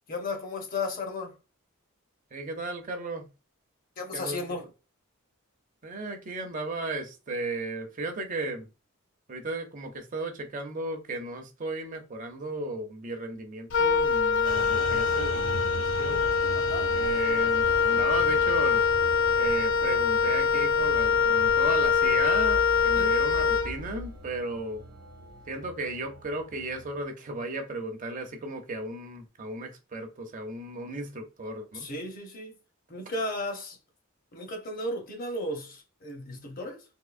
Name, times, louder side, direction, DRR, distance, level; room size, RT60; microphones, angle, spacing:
voice 1, 0.1-1.4 4.0-4.6 16.5-16.9 22.9-23.1 31.7-32.5 32.9-33.8 34.3-36.8, left 2 dB, 40° left, 0.8 m, -34 dB
voice 2, 2.3-3.3 4.1-4.4 5.8-8.7 9.3-16.3 16.9-18.8 19.4-24.8 25.5-31.9, right 2 dB, 40° right, 0.6 m, -35 dB
Wind instrument woodwind instrument, 13.7-24.1, left 6 dB, 60° left, 0.4 m, -24 dB
sound 1, 14.4-27.0, right 1 dB, 90° right, 0.8 m, -41 dB
3.6 x 2.7 x 2.5 m
head